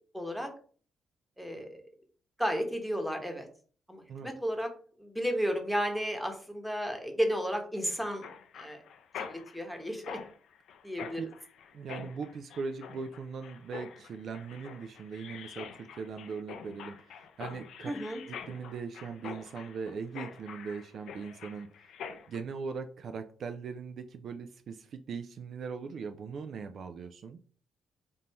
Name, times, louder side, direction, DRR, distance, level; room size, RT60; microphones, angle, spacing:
voice 1, 0.1-0.5 1.4-1.8 2.4-3.5 3.9-4.7 5.0-8.3 8.5-8.8 9.2-10.2 10.8-11.2 17.9-18.2, equal, ahead, 4 dB, 1.0 m, -33 dB
Mechanisms, 8.2-22.4, left 7 dB, 75° left, 0.5 m, -46 dB
voice 2, 11.7-17.9 18.3-21.9 22.3-27.4, right 5 dB, 60° right, 7 dB, 0.4 m, -40 dB
3.6 x 2.6 x 4.3 m, 0.43 s
cardioid pair, 90°, 0 cm